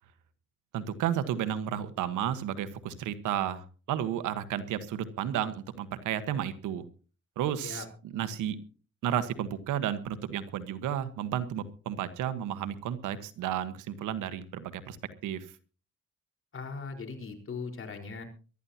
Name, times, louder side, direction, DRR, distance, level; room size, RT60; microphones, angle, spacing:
voice 1, 0.7-6.8 7.4-8.6 9.0-15.0 15.2-15.5, right 10 dB, 90° right, 11 dB, 1.4 m, -32 dB
voice 2, 16.5-18.2, left 4 dB, 45° left, 4 dB, 4.5 m, -39 dB
23.0 x 13.0 x 2.9 m, 0.36 s
cardioid pair, 90°, 30 cm